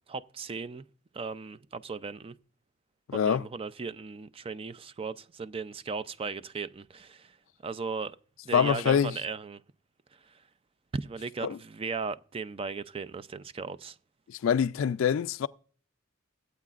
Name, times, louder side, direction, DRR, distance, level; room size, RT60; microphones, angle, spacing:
voice 1, 0.1-0.8 1.1-2.3 3.1-7.4 7.6-8.2 8.4-9.6 10.2-10.4 10.9-14.0, right 4 dB, 30° right, 0.4 m, -37 dB
voice 2, 3.1-3.4 8.5-9.1 11.4-11.6 14.3-15.5, left 7 dB, 70° left, 0.3 m, -25 dB
17.0 x 8.4 x 2.4 m
head